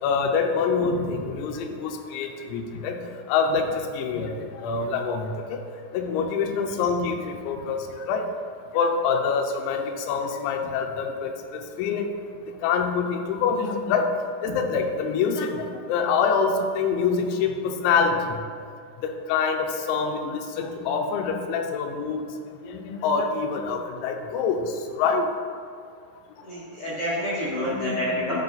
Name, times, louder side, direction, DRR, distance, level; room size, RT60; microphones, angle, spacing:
voice 1, 0.0-3.0 3.3-5.6 5.9-8.3 8.7-12.1 12.5-14.1 14.4-18.4 19.0-22.3 22.6-25.3 27.6-28.4, left 5 dB, 85° left, 4 dB, 3.0 m, -26 dB
voice 2, 26.4-28.4, left 1 dB, 50° left, -11 dB, 1.8 m, -28 dB
11.0 x 4.8 x 4.0 m, 2.2 s
omnidirectional pair, 5.4 m